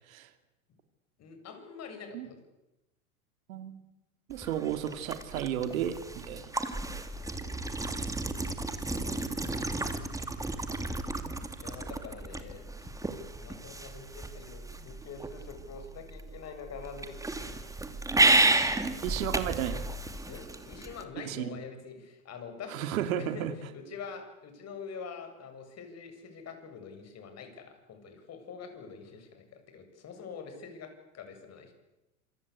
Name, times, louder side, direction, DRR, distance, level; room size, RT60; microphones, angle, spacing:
voice 1, 1.2-2.4 7.1-7.6 11.6-13.1 13.4-17.5 18.6-19.0 20.3-22.8 23.1-31.7, left 5 dB, 35° left, 7 dB, 7.8 m, -45 dB
voice 2, 3.5-3.8 4.3-6.5 11.2-11.3 19.0-19.9 21.2-21.6 22.7-23.5, right 10 dB, 70° right, 9 dB, 2.8 m, -33 dB
sound 1, 4.3-21.0, right 2 dB, 5° right, 2.8 m, -32 dB
27.5 x 26.0 x 8.3 m, 0.95 s
hypercardioid pair, 100°, 43 cm